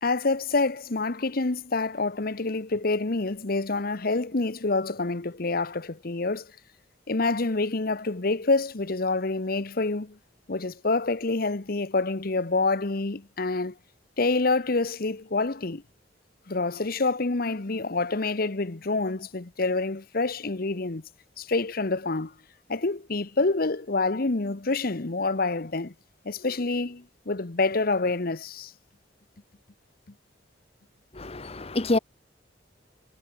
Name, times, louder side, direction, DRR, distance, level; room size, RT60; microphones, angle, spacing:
voice 1, 0.0-6.5 7.1-10.2 10.5-13.7 14.2-15.8 16.5-21.0 21.4-22.3 22.7-25.9 26.2-28.7, left 3 dB, 55° left, 1.0 m, -27 dB
voice 2, 31.2-32.0, left 2 dB, 35° left, 1.2 m, -27 dB
head